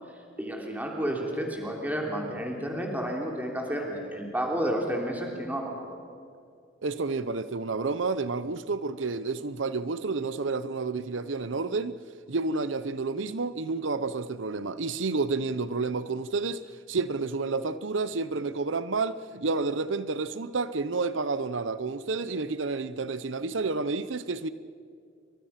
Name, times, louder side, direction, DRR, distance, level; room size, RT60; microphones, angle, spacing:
voice 1, 0.4-5.9, equal, 10° right, 3.3 m, -31 dB
voice 2, 6.8-12.0 12.3-16.6 16.9-24.5, right 3 dB, 85° right, 0.8 m, -30 dB
29.5 x 25.0 x 5.9 m
head